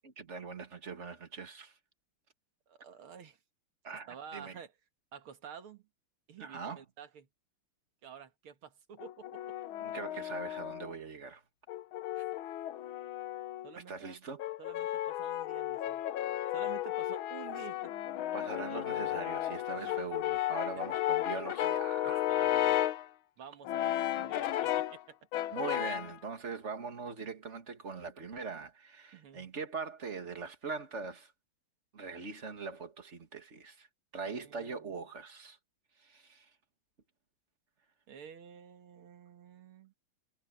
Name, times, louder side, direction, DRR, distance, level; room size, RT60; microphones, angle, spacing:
voice 1, 0.0-1.8 3.8-4.6 6.4-6.8 9.8-11.4 13.7-14.4 18.3-22.3 25.5-31.3 31.9-33.9 34.1-35.6 36.0-36.5, right 5 dB, 35° right, 2.3 m, -42 dB
voice 2, 2.7-3.4 4.1-4.7 5.1-5.8 6.3-7.3 8.0-9.5 12.1-12.3 13.6-14.2 14.6-16.0 16.5-17.9 19.7-20.1 22.0-22.8 23.4-25.2 29.1-29.5 34.3-35.0 38.1-39.9, right 7 dB, 80° right, 2.6 m, -50 dB
Brass instrument, 9.0-10.9 11.7-13.7 14.4-23.1 23.6-25.0 25.3-26.2, left 13 dB, 75° left, 1.5 m, -34 dB
omnidirectional pair, 2.3 m